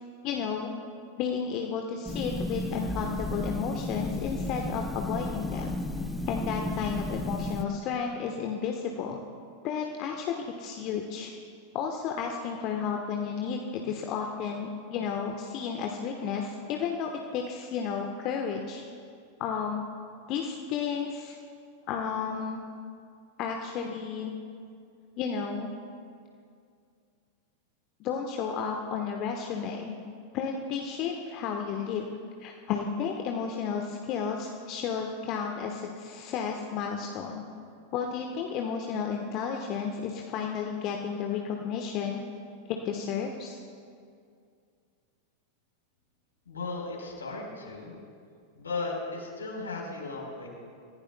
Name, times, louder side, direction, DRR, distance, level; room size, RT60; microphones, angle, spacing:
voice 1, 0.2-0.7 1.2-5.8 6.3-9.2 9.6-11.3 11.7-18.8 19.4-19.8 20.3-21.4 21.9-22.6 23.4-24.3 25.2-25.7 28.0-30.0 30.3-32.1 32.4-37.4 37.9-42.2 42.8-43.6, left 6 dB, 40° left, 2 dB, 1.1 m, -32 dB
sound 1, 2.1-7.6, left 1 dB, ahead, 0.9 m, -33 dB
voice 2, 46.5-48.0 48.6-50.5, left 3 dB, 75° left, -1 dB, 3.9 m, -36 dB
29.5 x 15.5 x 2.2 m, 2.3 s
figure-of-eight pair, 90°, 0 cm